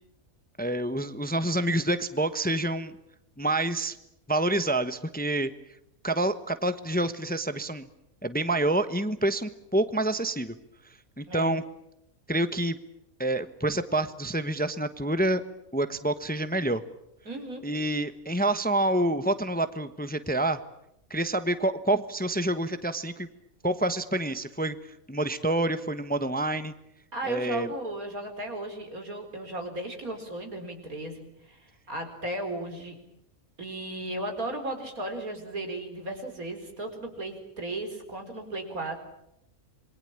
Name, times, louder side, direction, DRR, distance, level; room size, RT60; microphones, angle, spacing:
voice 1, 0.6-3.0 3.4-4.0 4.3-5.5 6.0-7.9 8.2-10.5 11.2-11.6 12.3-12.8 13.2-15.4 15.7-16.8 17.6-20.6 21.1-23.3 23.6-26.7 27.2-27.7, right 1 dB, 5° left, 11 dB, 1.0 m, -27 dB
voice 2, 17.2-17.6 27.1-33.0 33.6-39.0, right 1 dB, 85° right, 5 dB, 5.0 m, -35 dB
27.0 x 22.5 x 8.8 m, 0.79 s
omnidirectional pair, 1.5 m